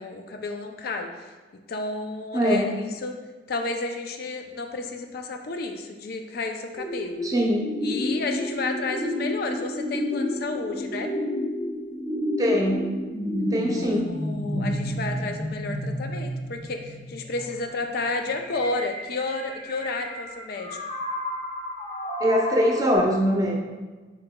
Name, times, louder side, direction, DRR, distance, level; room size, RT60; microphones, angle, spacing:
voice 1, 0.0-1.3 1.7-3.2 3.5-7.2 7.8-11.1 13.7-20.8, left 3 dB, 55° left, 5 dB, 0.4 m, -32 dB
voice 2, 2.3-2.7 7.2-7.7 12.4-12.9 13.5-14.1 22.2-23.6, equal, 20° right, -1 dB, 0.6 m, -22 dB
sound 1, 6.8-23.0, left 1 dB, 35° left, 0.8 m, -31 dB
6.4 x 3.7 x 2.2 m, 1.3 s
head